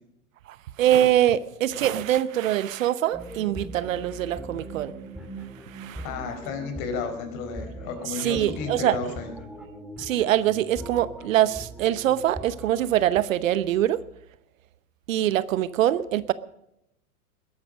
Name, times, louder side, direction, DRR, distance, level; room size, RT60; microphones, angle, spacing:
voice 1, 0.5-4.9 5.6-6.0 8.1-9.0 10.0-14.0 15.1-16.3, right 12 dB, 60° right, 17 dB, 0.9 m, -24 dB
sound 1, 3.1-13.2, right 1 dB, ahead, 2.3 m, -41 dB
voice 2, 6.0-9.3, left 5 dB, 45° left, 7 dB, 4.6 m, -32 dB
21.0 x 11.5 x 5.1 m, 0.80 s
hypercardioid pair, 100°, 45 cm